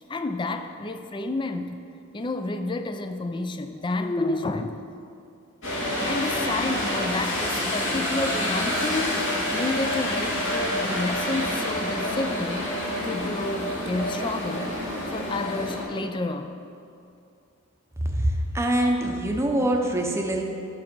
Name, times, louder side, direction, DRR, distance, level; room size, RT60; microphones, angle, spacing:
voice 1, 0.1-4.8 6.0-9.2 9.5-12.7 13.0-14.8 15.1-16.6, left 2 dB, 20° left, 8 dB, 0.3 m, -30 dB
sound 1, 5.6-15.8, left 1 dB, 60° left, 2.2 m, -28 dB
voice 2, 18.0-20.4, right 1 dB, 10° right, 2 dB, 0.7 m, -24 dB
10.5 x 6.1 x 5.2 m, 2.6 s
head